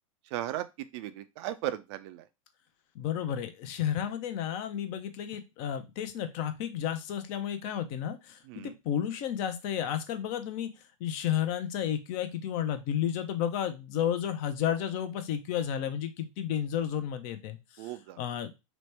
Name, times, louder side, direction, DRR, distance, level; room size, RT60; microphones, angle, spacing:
voice 1, 0.3-2.2 8.5-8.7 17.8-18.2, right 13 dB, 50° right, 12 dB, 0.4 m, -36 dB
voice 2, 2.9-8.4 8.8-10.7 11.0-17.9 18.2-18.7, left 9 dB, 45° left, 9 dB, 0.5 m, -32 dB
3.0 x 2.1 x 3.2 m, 0.24 s
hypercardioid pair, 105°, 18 cm